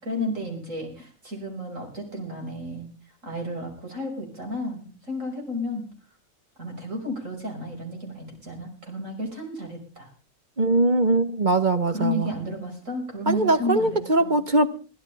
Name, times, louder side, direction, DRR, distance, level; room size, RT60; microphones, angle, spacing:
voice 1, 0.0-2.9 3.2-5.8 6.6-10.1 11.9-14.3, left 1 dB, 65° right, 2 dB, 6.1 m, -32 dB
voice 2, 10.6-12.3 13.3-14.7, right 2 dB, 35° right, 9 dB, 1.4 m, -21 dB
22.5 x 15.5 x 3.5 m, 0.37 s
omnidirectional pair, 1.5 m